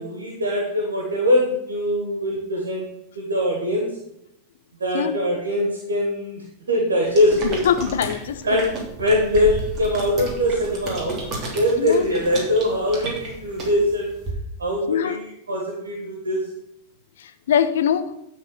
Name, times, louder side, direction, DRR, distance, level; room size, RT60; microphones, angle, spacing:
voice 1, 0.0-2.9 3.1-4.0 4.8-7.6 8.4-14.1 14.6-16.5, left 1 dB, 70° right, -1 dB, 2.6 m, -22 dB
sound 1, 7.1-14.3, right 2 dB, 30° right, 3.2 m, -33 dB
voice 2, 7.6-8.4 11.8-12.0 14.9-15.1 17.5-18.0, left 8 dB, 60° left, 10 dB, 0.8 m, -21 dB
12.0 x 4.7 x 6.8 m, 0.81 s
figure-of-eight pair, 90°, 0 cm